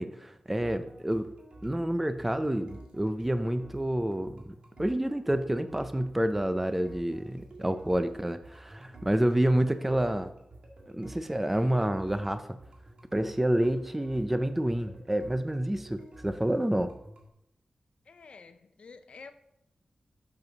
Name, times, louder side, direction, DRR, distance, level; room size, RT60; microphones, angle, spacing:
voice 1, 0.0-1.3 1.6-4.4 4.8-10.3 11.0-12.4 13.1-16.9, right 1 dB, 10° right, 10 dB, 0.4 m, -28 dB
sound 1, 0.6-17.3, right 2 dB, 55° right, 1.8 m, -51 dB
voice 2, 18.1-19.3, left 4 dB, 65° left, 10 dB, 0.7 m, -49 dB
6.8 x 6.7 x 5.9 m, 0.80 s
wide cardioid pair, 140°, 2 cm